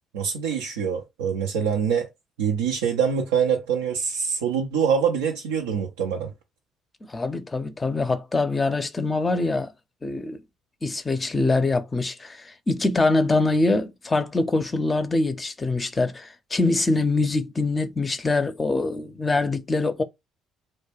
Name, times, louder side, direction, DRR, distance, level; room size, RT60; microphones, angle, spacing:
voice 1, 0.1-2.1 2.4-6.3, right 7 dB, 80° right, 0.4 m, -24 dB
voice 2, 7.1-9.7 10.0-10.4 10.8-20.0, left 3 dB, 25° left, 0.5 m, -24 dB
2.2 x 2.1 x 3.1 m
hypercardioid pair, 50°, 0 cm